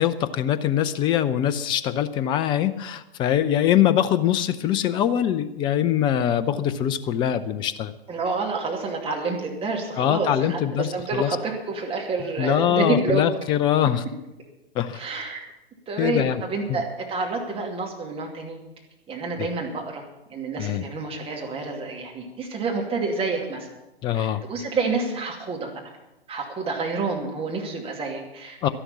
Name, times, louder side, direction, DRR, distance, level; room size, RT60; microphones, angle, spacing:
voice 1, 0.0-7.9 10.0-11.3 12.4-14.0 14.8-15.0 16.0-16.4 20.6-20.8 24.0-24.4 28.6-28.7, left 10 dB, 15° left, 13 dB, 0.4 m, -23 dB
voice 2, 8.1-13.3 14.9-15.4 15.9-18.6 19.1-20.0 20.3-23.7 24.1-25.7 26.3-28.7, right 3 dB, 20° right, 1 dB, 2.5 m, -28 dB
12.0 x 11.0 x 7.2 m, 0.97 s
figure-of-eight pair, 110°, 31 cm